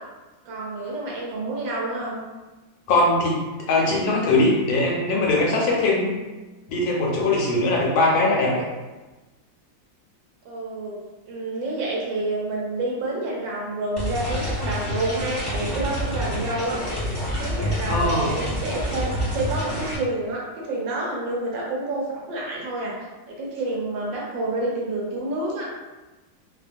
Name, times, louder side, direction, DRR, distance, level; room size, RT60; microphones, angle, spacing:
voice 1, 0.5-2.2 10.4-11.0 11.3-16.8 17.4-23.0 23.3-25.7, right 2 dB, 75° right, -3 dB, 1.3 m, -28 dB
voice 2, 2.9-3.4 3.7-6.2 6.7-8.6 17.9-18.3, left 2 dB, 75° left, -3 dB, 1.4 m, -21 dB
sound 1, 14.0-20.0, equal, 15° left, 0.8 m, -28 dB
3.3 x 2.2 x 2.5 m, 1.2 s
omnidirectional pair, 2.2 m